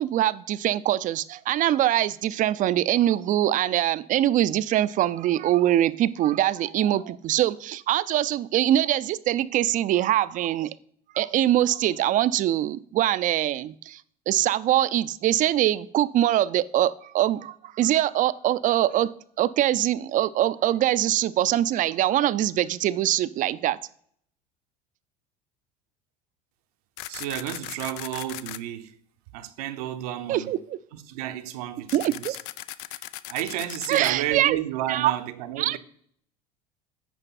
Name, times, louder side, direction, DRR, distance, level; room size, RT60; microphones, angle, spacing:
voice 1, 0.0-10.7 11.1-14.0 14.3-19.1 19.4-23.8 30.3-30.6 31.9-32.3 33.9-34.6 34.9-35.1 35.6-35.8, right 13 dB, 40° right, 0.4 m, -23 dB
sound 1, 27.0-28.6 31.9-34.1, left 15 dB, 65° left, 0.4 m, -38 dB
voice 2, 27.1-29.0 29.3-30.6 30.9-32.4 33.3-35.8, right 13 dB, 75° right, 0.7 m, -32 dB
9.1 x 5.2 x 4.1 m
hypercardioid pair, 75°, 20 cm